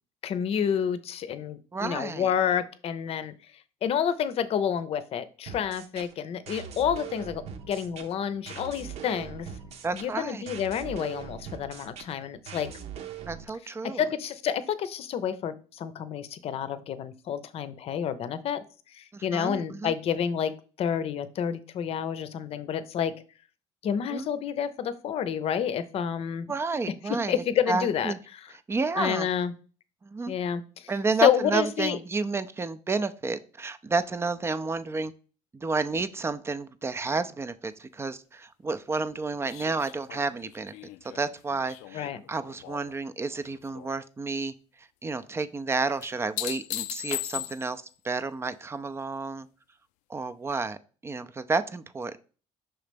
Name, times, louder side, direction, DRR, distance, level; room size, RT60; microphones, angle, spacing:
voice 1, 0.2-3.3 3.8-7.4 7.7-9.5 9.9-12.7 13.8-18.6 18.9-23.1 23.8-26.5 27.3-28.1 28.9-29.5 30.3-30.9 31.2-32.0 41.9-42.2, left 8 dB, 55° left, 0.7 m, -29 dB
voice 2, 1.7-2.3 9.8-10.5 13.2-14.0 19.1-19.9 24.1-24.3 26.5-28.2 28.5-29.3 30.0-30.3 30.9-35.1 35.5-40.7 41.0-49.5 50.1-50.8 51.0-52.2, right 4 dB, 20° right, 0.5 m, -31 dB
sound 1, 5.5-13.5, right 8 dB, 60° right, 0.9 m, -41 dB
sound 2, 39.5-43.0 43.3-43.9 46.0-47.9 50.5-50.6, left 14 dB, 85° left, 0.4 m, -38 dB
5.8 x 3.2 x 5.1 m
cardioid pair, 105°, 12 cm